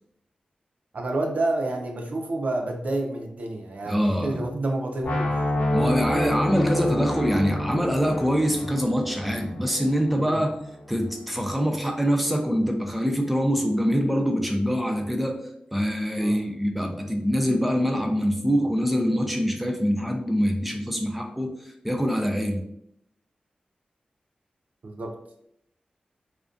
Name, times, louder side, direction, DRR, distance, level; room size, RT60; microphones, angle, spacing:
voice 1, 0.9-5.4 10.2-10.4 16.2-16.4 24.8-25.1, right 2 dB, 65° right, 2 dB, 0.4 m, -29 dB
voice 2, 3.9-4.4 5.7-10.5 10.9-15.4 15.7-22.6, equal, ahead, 3 dB, 0.4 m, -24 dB
sound 1, 5.0-11.0, left 1 dB, 50° left, 0.5 m, -28 dB
2.3 x 2.1 x 2.5 m, 0.73 s
cardioid pair, 50°, 3 cm